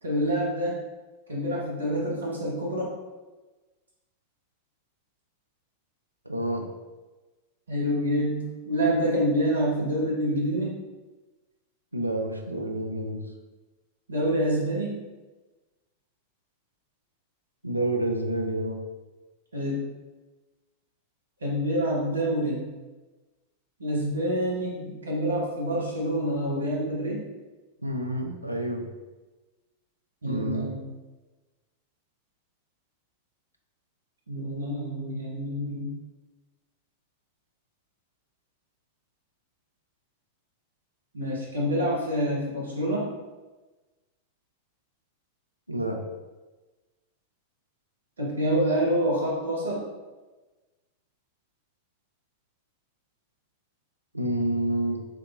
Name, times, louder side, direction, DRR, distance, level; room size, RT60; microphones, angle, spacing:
voice 1, 0.0-0.8 1.3-2.9 7.7-10.8 14.1-15.0 19.5-19.9 21.4-22.6 23.8-27.2 30.2-30.8 34.3-36.0 41.1-43.1 48.2-49.9, equal, 75° right, -3 dB, 0.9 m, -27 dB
voice 2, 6.3-6.7 11.9-13.2 17.6-18.8 27.8-28.9 30.2-30.7 45.7-46.0 54.1-55.0, right 1 dB, 90° right, 2 dB, 0.4 m, -28 dB
3.5 x 3.2 x 2.4 m, 1.2 s
figure-of-eight pair, 90°, 0 cm